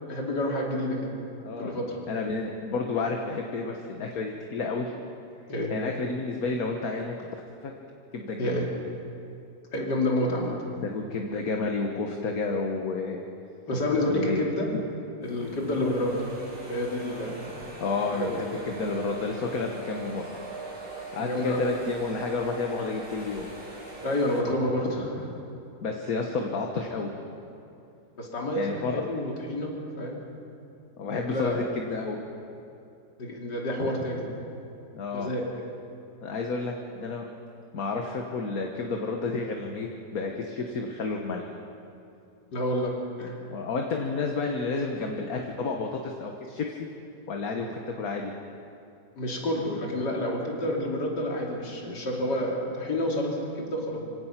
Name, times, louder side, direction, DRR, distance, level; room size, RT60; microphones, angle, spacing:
voice 1, 0.1-1.1 1.6-1.9 5.5-5.7 8.4-8.7 9.7-10.6 13.7-14.7 15.2-16.2 16.7-17.6 18.0-18.4 21.2-21.6 24.0-25.3 28.2-30.2 31.3-31.6 33.2-34.3 35.1-35.4 42.5-43.4 49.2-54.0, left 1 dB, 75° left, -1 dB, 3.6 m, -29 dB
voice 2, 2.1-4.9 5.7-7.3 7.6-7.7 8.1-8.7 10.8-13.2 14.1-14.4 17.8-20.4 21.1-23.5 25.8-27.1 28.5-29.0 31.0-32.2 34.9-35.3 36.2-37.2 37.7-41.4 43.5-46.9 47.3-48.3, left 4 dB, 60° left, 2 dB, 1.7 m, -30 dB
sound 1, 15.2-24.4, right 2 dB, 85° right, 5.8 m, -41 dB
26.0 x 17.0 x 5.9 m, 2.7 s
omnidirectional pair, 1.8 m